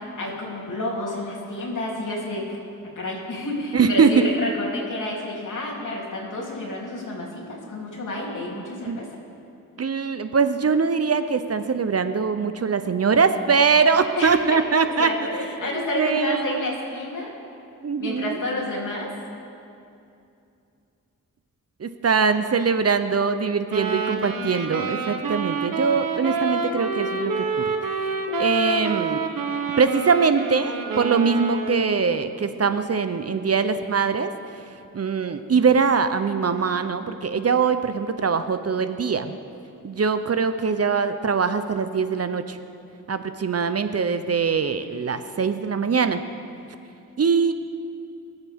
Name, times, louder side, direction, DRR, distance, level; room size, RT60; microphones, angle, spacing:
voice 1, 0.0-2.4 2.9-9.1 14.1-14.6 15.0-17.3 18.0-19.1, left 1 dB, 60° left, -4 dB, 3.3 m, -30 dB
voice 2, 3.7-4.3 8.9-9.0 9.8-16.6 17.8-18.4 21.8-27.7 28.0-28.1 28.4-29.2 29.8-34.6 34.9-39.3 39.8-42.6 43.1-46.2 47.2-47.5, right 5 dB, 45° right, 10 dB, 0.7 m, -22 dB
sound 1, 23.7-32.1, right 4 dB, 75° right, 1.1 m, -28 dB
23.5 x 8.1 x 3.6 m, 2.6 s
cardioid pair, 55°, 34 cm